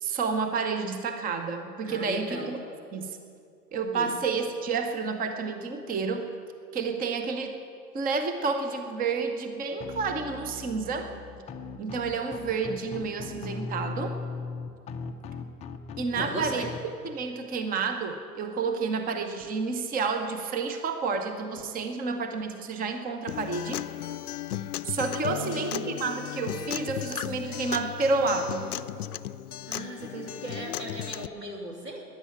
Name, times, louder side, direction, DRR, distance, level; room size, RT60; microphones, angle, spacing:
voice 1, 0.0-2.6 2.9-3.2 3.7-6.3 6.7-7.6 7.9-11.1 11.8-14.2 16.0-16.7 17.0-23.8 24.8-28.7, right 4 dB, 20° right, 7 dB, 1.0 m, -30 dB
voice 2, 1.8-2.5 3.9-4.1 16.1-16.7 25.3-26.0 29.6-32.0, right 1 dB, 90° right, 0 dB, 3.1 m, -37 dB
sound 1, 9.8-16.8, left 4 dB, 15° left, 0.5 m, -38 dB
Acoustic guitar, 23.3-31.3, left 12 dB, 70° left, 0.6 m, -35 dB
14.0 x 10.5 x 8.8 m, 2.4 s
figure-of-eight pair, 105°, 47 cm